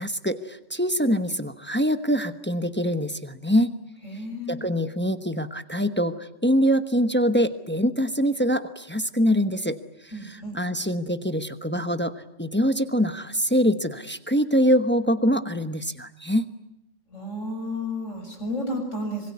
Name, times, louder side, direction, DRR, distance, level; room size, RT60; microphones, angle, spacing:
voice 1, 0.0-3.7 4.5-9.8 10.0-16.4, equal, 10° left, 9 dB, 1.0 m, -24 dB
voice 2, 4.0-4.7 10.1-10.6 17.1-19.3, left 1 dB, 80° left, 3 dB, 7.1 m, -32 dB
26.0 x 22.0 x 9.6 m, 0.84 s
omnidirectional pair, 1.3 m